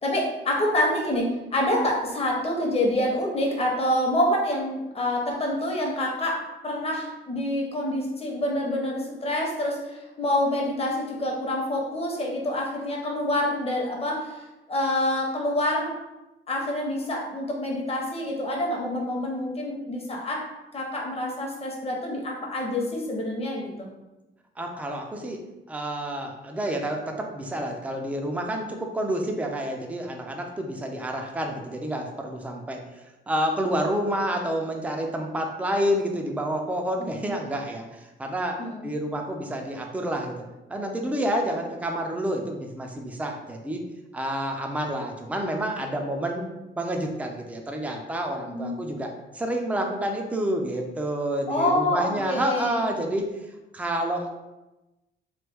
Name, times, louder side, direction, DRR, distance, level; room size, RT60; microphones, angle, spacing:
voice 1, 0.0-6.4 6.6-15.9 16.5-20.5 20.7-23.7 37.0-37.2 38.6-38.9 48.5-48.7 51.5-52.8, left 1 dB, 30° left, -1 dB, 0.9 m, -27 dB
voice 2, 24.6-25.4 25.7-32.8 33.3-38.6 38.8-40.3 40.7-43.8 44.1-46.5 46.8-53.3 53.7-54.3, right 1 dB, 5° right, 2 dB, 0.4 m, -29 dB
3.1 x 2.2 x 3.4 m, 1.0 s
cardioid pair, 90°, 20 cm